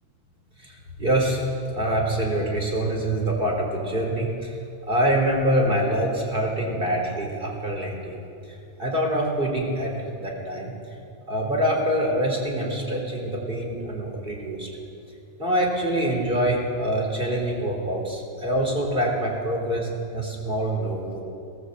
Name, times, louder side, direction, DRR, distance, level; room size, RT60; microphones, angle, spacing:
voice 1, 0.6-1.4 1.7-4.5 4.9-8.2 8.8-10.7 11.3-14.7 15.4-21.2, right 1 dB, 15° right, 0 dB, 3.8 m, -25 dB
18.5 x 17.5 x 8.0 m, 2.6 s
omnidirectional pair, 3.3 m